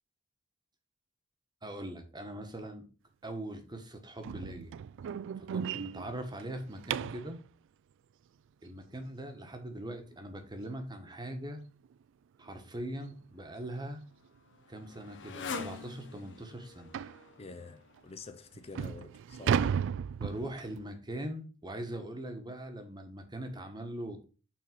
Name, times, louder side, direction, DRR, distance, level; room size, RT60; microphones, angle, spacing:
voice 1, 1.6-2.8 3.2-4.7 5.4-7.4 8.6-11.6 12.4-14.0 14.7-16.9 20.2-24.2, right 1 dB, 20° right, 1.2 m, -41 dB
sound 1, 4.2-7.3 10.1-10.2 10.7-10.9 11.3-11.4 11.8-11.9 13.0-13.2 13.6-13.7 14.4-14.5 14.8-14.9 15.4-15.5 16.9-17.2 18.0-18.1 18.5-20.8, right 7 dB, 60° right, 0.3 m, -34 dB
Motorcycle, 13.4-18.8, left 5 dB, 60° left, 0.9 m, -46 dB
voice 2, 17.4-19.7, left 3 dB, 30° left, 0.5 m, -48 dB
6.1 x 4.1 x 5.8 m
head